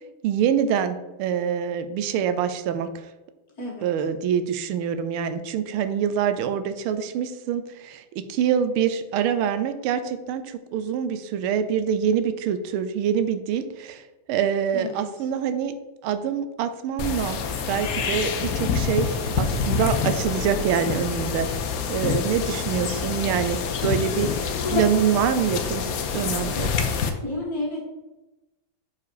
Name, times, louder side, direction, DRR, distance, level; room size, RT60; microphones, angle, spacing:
voice 1, 0.2-3.1 3.8-15.8 16.0-17.4 17.7-21.5 21.9-25.8 26.1-26.7, right 8 dB, 85° right, 11 dB, 1.5 m, -25 dB
voice 2, 14.7-15.2 27.2-27.8, left 1 dB, 45° left, -4 dB, 2.1 m, -31 dB
sound 1, 17.0-27.1, left 6 dB, 75° left, 0.8 m, -26 dB
5.2 x 4.7 x 4.7 m, 1.0 s
omnidirectional pair, 2.3 m